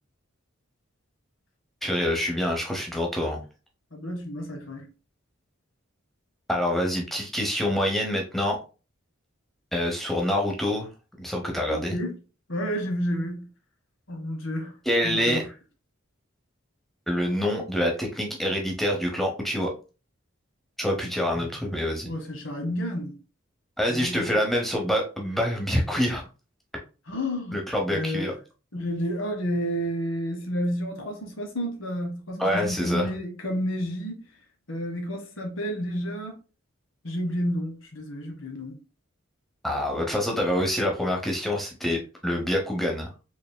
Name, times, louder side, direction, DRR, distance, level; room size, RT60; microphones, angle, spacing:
voice 1, 1.8-3.4 6.5-8.6 9.7-10.9 11.2-12.0 14.8-15.4 17.1-19.7 20.8-22.1 23.8-26.2 27.5-28.3 32.4-33.1 39.6-43.1, equal, ahead, 0.8 m, -26 dB
voice 2, 3.9-4.9 11.7-12.2 12.5-13.5 14.1-14.7 15.0-15.4 22.0-23.2 23.9-24.3 27.1-27.6 27.9-28.3 28.7-34.2 34.7-36.4 37.0-38.8, equal, 70° left, 1.1 m, -30 dB
4.6 x 3.3 x 2.2 m
head